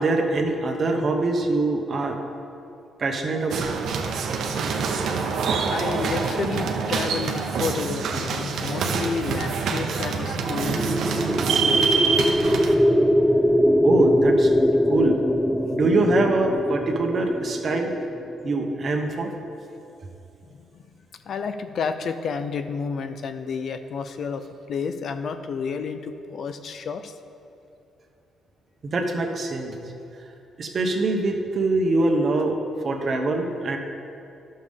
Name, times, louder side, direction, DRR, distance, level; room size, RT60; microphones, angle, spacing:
voice 1, 0.0-2.2 3.0-3.7 13.8-14.5 14.9-15.2 15.7-17.9 18.4-19.4 28.8-29.8 30.6-32.6 32.8-33.8, right 2 dB, 45° right, 3 dB, 1.0 m, -23 dB
sound 1, 3.5-12.7, right 5 dB, 70° right, 0.7 m, -25 dB
voice 2, 5.2-10.9 11.5-12.2 20.7-20.8 21.2-27.1, left 5 dB, 60° left, 9 dB, 0.5 m, -31 dB
sound 2, 10.4-18.5, equal, ahead, 0.3 m, -22 dB
11.5 x 6.5 x 3.6 m, 2.7 s
cardioid pair, 90°, 0 cm